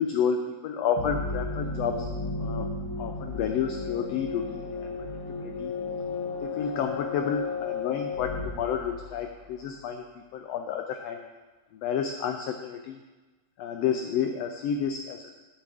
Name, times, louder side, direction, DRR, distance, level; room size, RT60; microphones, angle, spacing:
voice 1, 0.0-2.1 2.4-4.9 5.4-5.7 6.4-10.0 10.3-11.2 11.7-13.0 13.6-15.3, left 7 dB, 85° left, 5 dB, 1.4 m, -30 dB
sound 1, 1.0-9.6, left 4 dB, 70° left, 2.2 m, -34 dB
10.0 x 5.8 x 4.9 m, 1.2 s
omnidirectional pair, 3.5 m